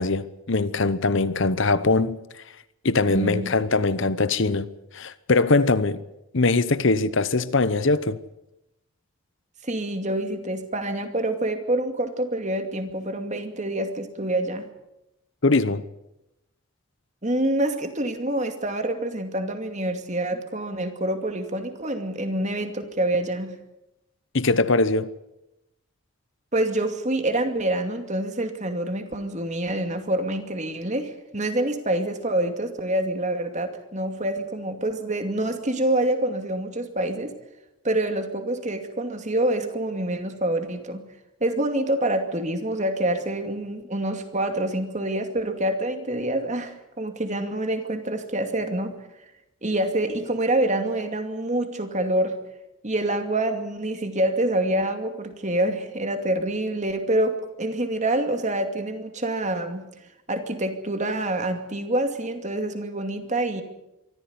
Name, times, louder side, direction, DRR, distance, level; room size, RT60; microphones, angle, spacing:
voice 1, 0.0-2.2 2.8-6.0 6.3-8.2 15.4-15.8 24.3-25.1, left 3 dB, 55° left, 0.9 m, -22 dB
voice 2, 3.1-3.5 9.6-14.7 17.2-23.6 26.5-37.3 37.8-41.0 41.4-48.9 49.6-52.3 52.8-59.8 60.3-63.6, right 1 dB, 35° right, 2.5 m, -26 dB
24.0 x 15.0 x 9.6 m
head